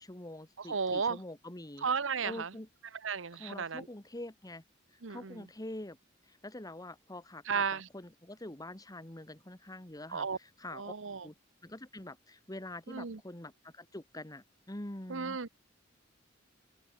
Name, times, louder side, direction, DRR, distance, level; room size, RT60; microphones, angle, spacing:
voice 1, 0.0-1.9 2.2-2.7 3.4-4.6 5.1-6.0 6.3-10.9 11.2-11.3 11.6-15.4, left 1 dB, 20° left, 1.8 m, -45 dB
voice 2, 0.6-1.2 1.8-2.5 3.0-3.9 5.0-5.4 7.5-7.9 10.1-10.4 10.7-11.3 12.9-13.2 15.1-15.5, right 5 dB, 85° right, 1.0 m, -34 dB
open air
head